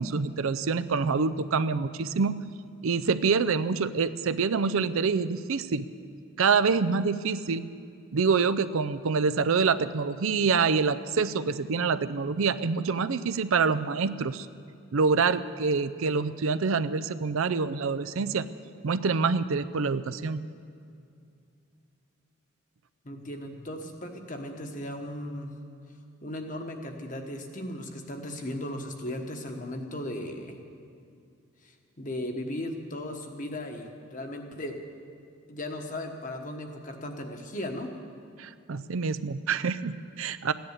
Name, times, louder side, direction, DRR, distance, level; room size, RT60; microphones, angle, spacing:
voice 1, 0.0-2.4 2.8-5.9 6.4-7.6 8.1-14.5 14.9-18.5 18.8-20.4 38.4-40.5, right 5 dB, 75° right, 12 dB, 0.5 m, -26 dB
voice 2, 23.0-25.5 26.2-30.6 31.6-34.8 35.5-37.9, left 1 dB, 35° left, 4 dB, 1.3 m, -36 dB
15.5 x 10.5 x 8.1 m, 2.4 s
head